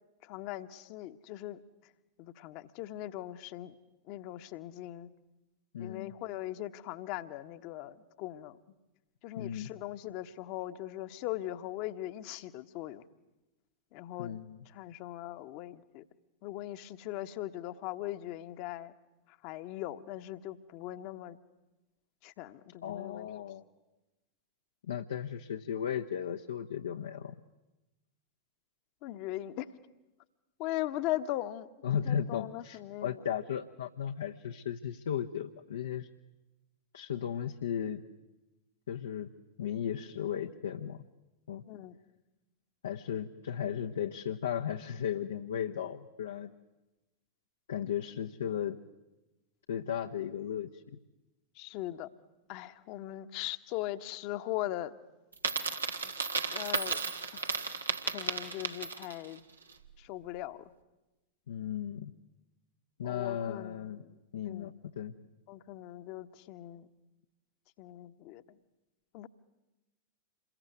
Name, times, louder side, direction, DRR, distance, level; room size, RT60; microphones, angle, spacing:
voice 1, 0.2-1.6 2.2-3.7 4.1-5.1 5.8-8.6 9.2-13.0 13.9-14.4 14.7-16.0 16.4-18.9 19.3-21.4 22.2-23.4 29.0-29.7 30.6-31.7 32.0-33.2 41.7-42.0 51.5-52.1 52.5-54.9 56.5-57.0 57.3-57.6 58.0-59.4 60.0-60.6 63.0-64.2 64.5-64.7 65.5-66.9 67.8-68.4 69.1-69.3, left 14 dB, 45° left, 11 dB, 1.3 m, -40 dB
voice 2, 5.7-6.1 9.4-9.7 14.2-14.6 22.8-23.6 24.9-27.4 31.8-36.1 36.9-38.0 38.9-39.3 39.6-41.0 41.5-41.6 42.8-46.5 47.7-48.8 49.7-50.7 56.0-56.1 61.5-62.1 63.0-64.0 64.3-65.1, left 9 dB, 65° left, 4 dB, 1.0 m, -35 dB
Coin (dropping), 55.3-59.3, right 4 dB, 75° right, 1.7 m, -34 dB
27.5 x 22.5 x 9.4 m, 1.0 s
figure-of-eight pair, 90°, 0 cm